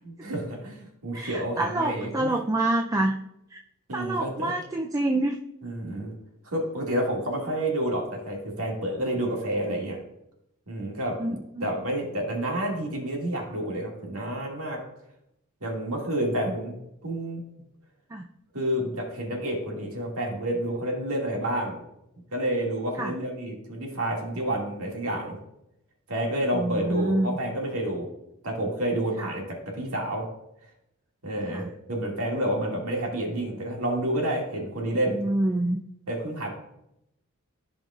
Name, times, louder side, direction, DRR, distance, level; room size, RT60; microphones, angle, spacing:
voice 1, 0.0-2.3 3.9-4.5 5.6-6.1 6.4-10.0 10.7-11.2 11.6-14.8 15.6-17.4 18.5-21.8 22.3-25.4 26.1-28.1 28.4-30.3 31.2-35.2 36.1-36.5, right 1 dB, 80° right, -1 dB, 2.1 m, -29 dB
voice 2, 1.1-3.2 3.5-3.6 3.9-5.4 11.2-11.7 18.1-18.2 23.0-23.1 26.5-27.4 29.2-29.3 31.5-31.7 35.2-35.8, right 1 dB, 15° right, 3 dB, 0.4 m, -27 dB
15.0 x 5.2 x 2.4 m, 0.82 s
head